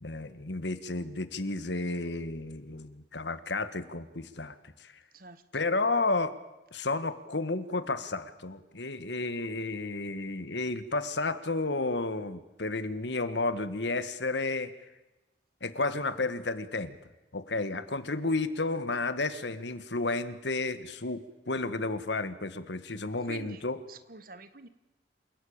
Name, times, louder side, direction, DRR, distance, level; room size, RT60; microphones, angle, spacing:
voice 1, 0.0-4.9 5.5-6.4 6.7-14.7 15.6-17.0 17.3-23.8, left 3 dB, 75° left, 12 dB, 1.6 m, -32 dB
voice 2, 22.9-23.6 23.9-24.7, right 4 dB, 50° right, 13 dB, 1.4 m, -47 dB
28.0 x 16.5 x 8.8 m, 1.0 s
head